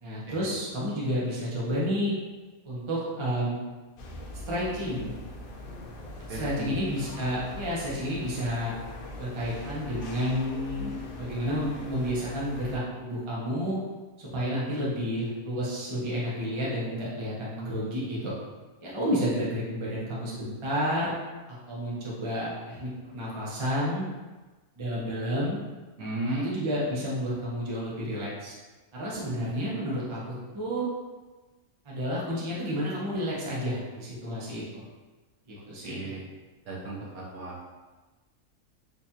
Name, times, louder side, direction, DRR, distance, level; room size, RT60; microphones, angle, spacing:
voice 1, 0.0-2.1 2.6-3.6 4.5-5.1 6.3-8.7 9.2-13.8 14.2-18.3 18.8-21.1 21.7-24.1 24.8-25.6 26.3-28.5 28.9-30.2 30.5-30.8 31.8-34.8 35.5-36.2, equal, 30° right, -6 dB, 0.6 m, -30 dB
sound 1, 4.0-12.8, left 1 dB, 75° left, 0.5 m, -42 dB
voice 2, 6.3-6.9 26.0-26.5 35.8-36.3 36.6-37.6, right 2 dB, 80° right, -4 dB, 1.3 m, -35 dB
4.0 x 2.5 x 2.7 m, 1.2 s
omnidirectional pair, 1.5 m